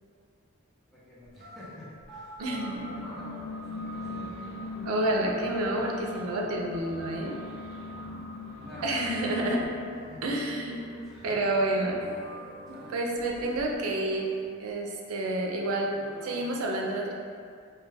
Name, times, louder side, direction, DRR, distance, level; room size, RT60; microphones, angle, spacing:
voice 1, 0.9-4.5 8.6-9.3 10.0-10.3 11.1-11.4 12.7-13.7 15.2-15.3 15.9-16.5 17.0-17.1, left 1 dB, ahead, -10 dB, 0.6 m, -48 dB
sound 1, 1.3-1.5 2.0-2.9 3.9-4.0 4.7-5.8 9.7-10.8 11.1-11.2 11.8-12.7 13.1-13.9 14.1-14.7, right 1 dB, 35° left, 1.2 m, -50 dB
sound 2, 2.4-9.7, left 2 dB, 90° left, 1.3 m, -40 dB
voice 2, 2.4-2.8 4.9-7.4 8.8-9.6 10.2-10.8 11.2-12.0 12.9-14.3 14.6-15.9 16.2-17.1, right 1 dB, 85° right, 0 dB, 0.4 m, -29 dB
sound 3, 2.7-14.4, equal, 55° left, 0.6 m, -49 dB
2.3 x 2.2 x 3.2 m, 2.2 s
head